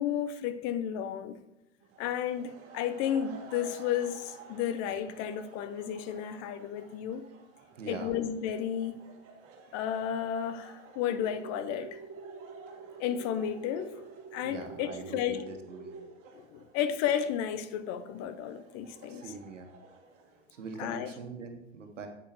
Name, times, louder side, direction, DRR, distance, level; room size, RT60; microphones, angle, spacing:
voice 1, 0.0-1.4 2.0-7.2 7.9-9.1 9.7-12.0 13.0-13.9 14.3-15.5 16.3-19.2 20.8-21.1, left 9 dB, 45° left, 0.8 m, -32 dB
sound 1, 1.8-21.2, right 4 dB, 40° right, 2.1 m, -54 dB
voice 2, 7.7-8.2 14.4-15.9 19.1-19.7 20.5-22.1, right 4 dB, 85° right, 1.4 m, -43 dB
sound 2, 11.1-16.1, right 4 dB, 15° right, 1.4 m, -47 dB
10.0 x 8.4 x 3.1 m
hypercardioid pair, 95°, 37 cm